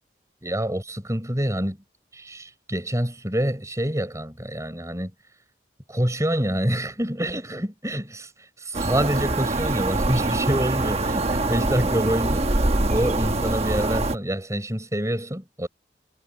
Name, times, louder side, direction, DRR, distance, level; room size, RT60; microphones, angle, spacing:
voice 1, 0.4-1.8 2.1-5.1 5.9-8.3 8.6-12.6 12.9-15.7, equal, 20° right, 6.9 m, -26 dB
sound 1, 8.7-14.2, right 2 dB, 40° right, 1.2 m, -24 dB
head